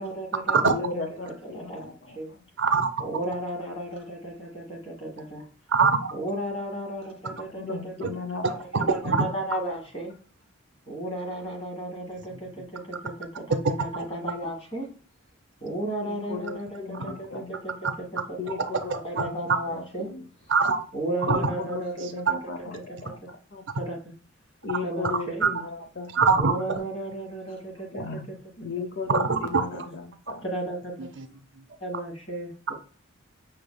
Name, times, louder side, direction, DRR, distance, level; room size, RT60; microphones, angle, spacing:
voice 1, 0.0-2.3 3.0-5.4 6.1-8.2 8.9-10.1 10.9-14.9 15.6-18.2 18.9-20.1 20.9-22.4 22.7-23.3 23.7-24.0 24.8-25.5 26.4-28.4 30.4-30.7 31.8-32.7, right 1 dB, 30° left, -1 dB, 1.5 m, -34 dB
voice 2, 0.6-2.4 7.6-9.2 16.0-17.5 18.4-20.2 21.3-23.6 24.6-26.5 27.9-28.3 28.6-30.4, left 5 dB, 55° left, 5 dB, 0.6 m, -36 dB
voice 3, 2.6-2.9 5.7-6.1 8.0-8.1 8.4-9.3 13.9-14.1 18.9-19.6 20.5-20.8 21.3-21.5 22.0-22.3 25.0-25.1 25.4-25.5 26.1-26.6 29.1-29.6 31.2-31.3 31.5-31.6 31.9-32.0, right 4 dB, 55° right, 7 dB, 0.6 m, -23 dB
5.7 x 3.3 x 2.2 m, 0.39 s
head